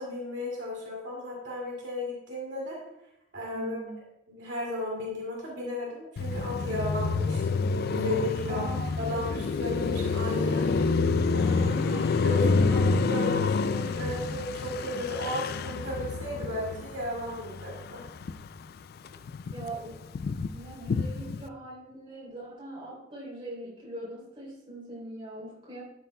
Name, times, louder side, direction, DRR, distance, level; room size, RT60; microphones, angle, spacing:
voice 1, 0.0-2.8 3.3-3.8 4.3-7.4 7.9-8.6 9.0-10.7 11.3-11.7 12.2-12.4 12.7-18.0, left 1 dB, 70° right, -4 dB, 2.5 m, -34 dB
voice 2, 3.5-4.0 8.5-9.1 11.5-12.9 19.5-20.0 20.5-25.8, right 1 dB, 30° right, -5 dB, 3.4 m, -41 dB
Car passing by, 6.2-18.6 19.0-21.5, left 4 dB, 55° left, 0.3 m, -28 dB
Motorcycle, 8.9-15.3, left 2 dB, 80° left, 1.7 m, -50 dB
12.0 x 7.8 x 2.3 m, 0.86 s
head